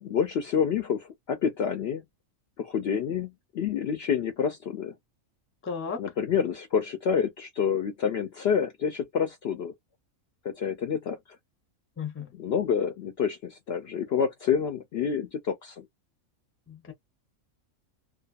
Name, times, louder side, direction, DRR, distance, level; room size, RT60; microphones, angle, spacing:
voice 1, 0.0-2.0 2.6-4.9 6.0-9.7 10.4-11.2 12.4-15.9, left 7 dB, 65° left, 0.6 m, -28 dB
voice 2, 5.6-6.0 12.0-12.3 16.7-16.9, left 6 dB, 15° left, 0.5 m, -34 dB
2.5 x 2.4 x 2.3 m
omnidirectional pair, 1.4 m